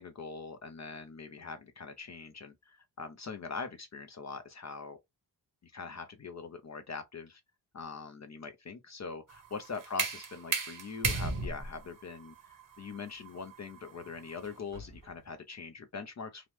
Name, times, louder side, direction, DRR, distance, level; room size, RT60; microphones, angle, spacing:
voice 1, 0.0-5.0 5.6-7.4 7.7-16.5, left 4 dB, 40° left, 0.5 m, -43 dB
sound 1, 9.3-15.1, right 4 dB, 45° right, 0.9 m, -36 dB
2.9 x 2.0 x 3.1 m
wide cardioid pair, 125°, 43 cm